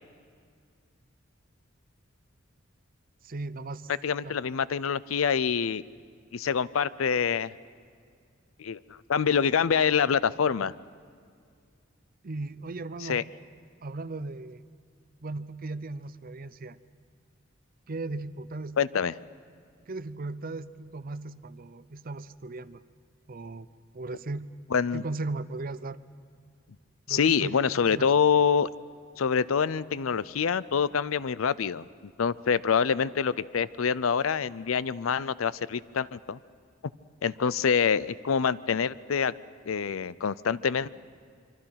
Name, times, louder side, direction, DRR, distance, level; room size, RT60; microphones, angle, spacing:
voice 1, 3.2-3.9 4.2-4.4 12.2-13.3 13.8-14.6 15.2-16.8 17.9-18.8 19.9-22.8 23.3-23.7 23.9-24.5 24.9-26.0 27.1-28.1, right 2 dB, 45° right, 15 dB, 0.6 m, -37 dB
voice 2, 4.0-5.8 6.3-7.5 8.6-8.8 9.1-10.7 13.0-13.2 18.8-19.1 24.7-25.0 27.1-28.7 29.2-31.9 32.2-36.4 37.2-39.3 39.7-40.9, left 6 dB, 90° left, 19 dB, 0.5 m, -26 dB
25.5 x 24.5 x 5.8 m, 2.2 s
head